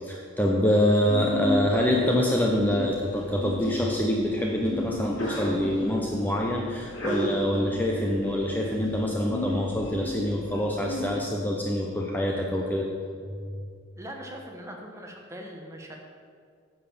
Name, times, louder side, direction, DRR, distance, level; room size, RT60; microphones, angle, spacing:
voice 1, 0.0-12.9, left 1 dB, 10° left, -1 dB, 0.7 m, -25 dB
Sneeze, 1.1-11.1, equal, 70° left, 2.5 m, -34 dB
voice 2, 14.0-16.0, equal, 15° right, 1 dB, 1.1 m, -41 dB
9.2 x 5.6 x 7.1 m, 2.1 s
head